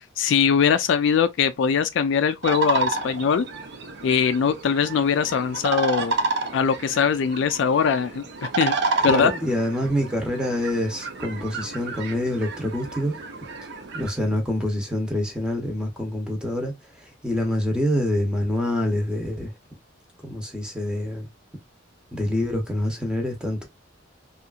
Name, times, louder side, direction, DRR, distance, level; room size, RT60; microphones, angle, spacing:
voice 1, 0.2-3.5 4.0-6.1 6.5-8.2 8.6-8.7 9.0-9.3, left 6 dB, 65° left, 0.3 m, -21 dB
sound 1, 2.4-14.1, right 3 dB, 60° right, 0.6 m, -30 dB
voice 2, 9.1-13.2 13.9-19.5 20.2-21.3 22.1-23.6, left 1 dB, 5° right, 0.7 m, -26 dB
2.8 x 2.4 x 2.3 m
head